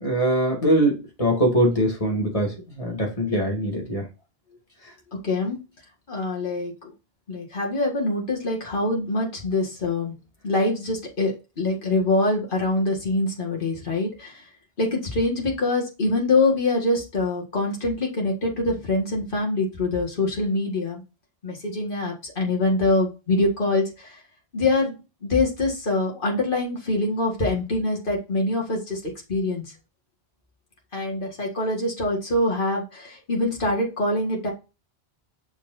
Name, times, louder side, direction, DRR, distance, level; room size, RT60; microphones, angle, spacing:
voice 1, 0.0-4.0, right 1 dB, 30° left, -1 dB, 2.6 m, -22 dB
voice 2, 5.2-5.6 6.1-6.9 7.3-10.1 10.4-14.4 14.8-21.0 21.4-24.2 24.5-25.0 25.2-29.6 30.9-34.5, left 2 dB, 50° left, -1 dB, 2.2 m, -24 dB
6.7 x 5.9 x 2.8 m, 0.29 s
omnidirectional pair, 1.1 m